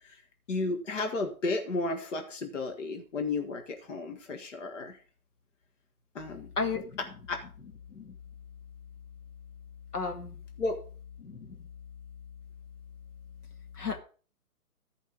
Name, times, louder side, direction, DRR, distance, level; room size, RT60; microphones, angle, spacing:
voice 1, 0.5-5.0 6.2-6.5 7.3-7.4 10.6-10.8, left 3 dB, 55° left, 4 dB, 1.9 m, -33 dB
voice 2, 6.6-7.0 7.9-8.1 9.9-10.4 11.2-11.6 13.8-14.0, left 4 dB, 85° left, 4 dB, 2.1 m, -33 dB
14.0 x 5.4 x 5.2 m, 0.39 s
figure-of-eight pair, 145°, 45 cm